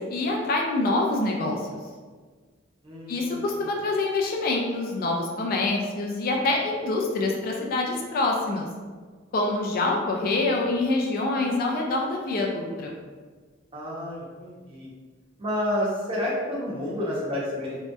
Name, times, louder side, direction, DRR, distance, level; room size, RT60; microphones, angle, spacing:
voice 1, 0.0-1.6 3.1-8.7 9.3-12.9, left 2 dB, 50° left, 0 dB, 0.3 m, -26 dB
voice 2, 2.8-3.6 13.7-14.9 15.4-17.8, left 1 dB, 30° right, -6 dB, 0.7 m, -30 dB
2.7 x 2.1 x 2.2 m, 1.5 s
head